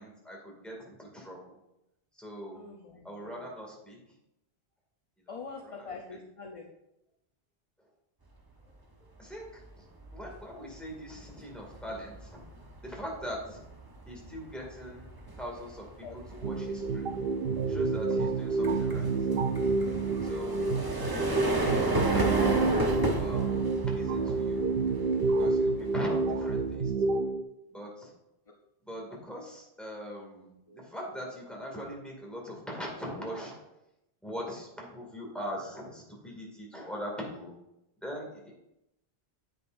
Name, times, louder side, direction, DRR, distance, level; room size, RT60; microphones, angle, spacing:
voice 1, 0.0-1.6 2.1-2.6 3.0-4.0 5.2-5.9 7.8-7.9 8.6-9.9 10.1-12.4 12.8-13.6 14.1-15.1 15.4-17.2 17.5-19.3 20.0-20.6 21.0-22.6 23.2-24.7 25.2-27.1 27.7-28.1 28.8-33.7 34.2-37.5 38.0-38.5, equal, ahead, -3 dB, 2.1 m, -42 dB
voice 2, 2.5-3.3 5.3-6.7 16.0-16.2 20.1-20.3 28.5-28.6 30.7-30.8, left 4 dB, 40° left, 1 dB, 0.7 m, -44 dB
sound 1, 9.3-9.6 10.0-26.7, right 1 dB, 25° right, 0.9 m, -34 dB
sound 2, 16.4-27.4, right 4 dB, 65° right, 0.7 m, -29 dB
9.7 x 7.7 x 2.6 m, 0.87 s
omnidirectional pair, 1.0 m